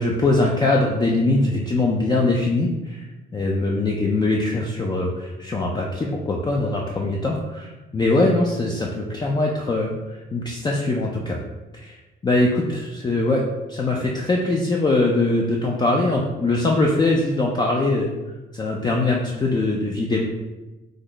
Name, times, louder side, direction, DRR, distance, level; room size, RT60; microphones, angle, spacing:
voice 1, 0.0-3.0 3.3-11.4 11.7-12.0 12.2-18.1 18.5-20.3, left 2 dB, 20° left, -1 dB, 0.4 m, -22 dB
3.3 x 2.0 x 3.8 m, 1.1 s
cardioid pair, 90°, 20 cm